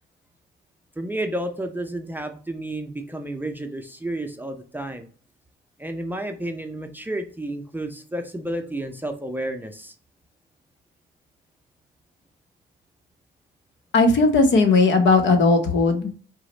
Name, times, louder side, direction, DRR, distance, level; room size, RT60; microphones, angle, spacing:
voice 1, 1.0-5.1 5.8-9.9, right 1 dB, 10° right, 5 dB, 0.5 m, -31 dB
voice 2, 13.9-16.1, left 3 dB, 65° left, 6 dB, 0.8 m, -17 dB
4.7 x 2.0 x 3.9 m, 0.42 s
cardioid pair, 90°, 20 cm